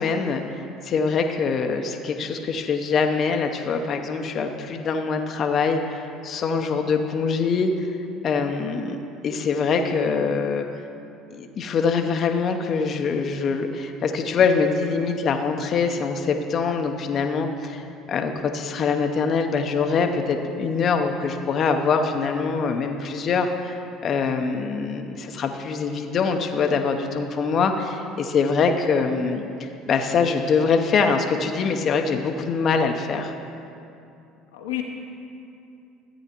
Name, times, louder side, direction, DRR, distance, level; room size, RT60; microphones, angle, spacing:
voice 1, 0.0-8.0 8.2-9.0 9.2-10.7 11.3-17.8 18.1-23.8 24.0-33.3, left 5 dB, 50° left, 4 dB, 0.7 m, -24 dB
voice 2, 6.5-6.8 33.0-33.1 34.5-34.8, left 14 dB, 85° left, 1 dB, 0.8 m, -32 dB
14.0 x 8.9 x 2.9 m, 2.6 s
hypercardioid pair, 65°, 0 cm